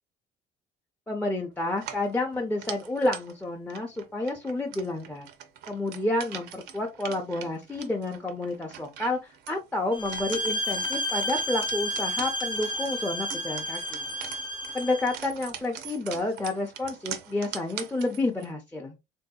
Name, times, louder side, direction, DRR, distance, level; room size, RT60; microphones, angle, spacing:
voice 1, 1.1-5.3 5.7-14.1 14.7-18.9, left 2 dB, 10° left, 0.5 m, -30 dB
sound 1, 1.7-18.5, right 9 dB, 80° right, 0.5 m, -43 dB
sound 2, 9.9-15.2, equal, 30° left, 0.8 m, -31 dB
3.3 x 2.6 x 2.3 m
cardioid pair, 110°, 17 cm